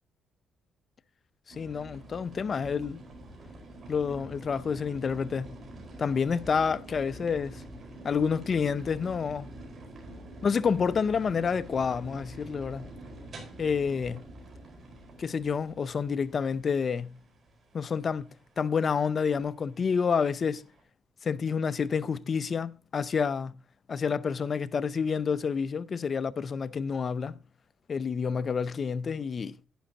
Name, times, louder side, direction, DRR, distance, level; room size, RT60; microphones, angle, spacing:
voice 1, 1.5-3.0 3.9-5.5 6.0-7.6 8.0-9.5 10.4-12.9 13.6-14.2 15.2-17.1 17.7-18.3 18.6-20.6 21.2-23.5 23.9-27.4 27.9-29.6, left 6 dB, 45° left, 0.5 m, -29 dB
sound 1, 1.5-20.8, right 1 dB, 45° right, 4.6 m, -47 dB
11.0 x 9.8 x 2.9 m
cardioid pair, 90°, 0 cm